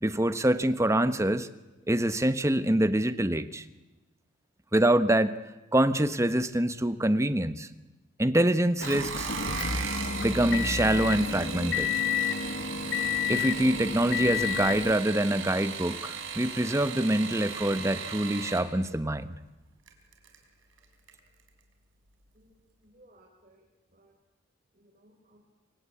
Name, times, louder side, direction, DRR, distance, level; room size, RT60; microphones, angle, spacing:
voice 1, 0.0-1.5 1.9-3.6 4.7-5.4 5.7-7.7 8.2-9.3 10.2-11.9 13.3-19.3, right 1 dB, 15° right, 12 dB, 1.0 m, -25 dB
sound 1, 8.7-18.7 19.9-20.4 20.8-21.2 21.5-21.6, right 6 dB, 75° right, 4.5 m, -37 dB
Motor vehicle (road) / Engine, 8.8-14.9, left 7 dB, 55° left, 1.2 m, -31 dB
voice 2, 22.3-24.1 24.7-25.4, right 1 dB, 40° right, -2 dB, 4.8 m, -61 dB
27.0 x 24.5 x 8.7 m, 1.1 s
head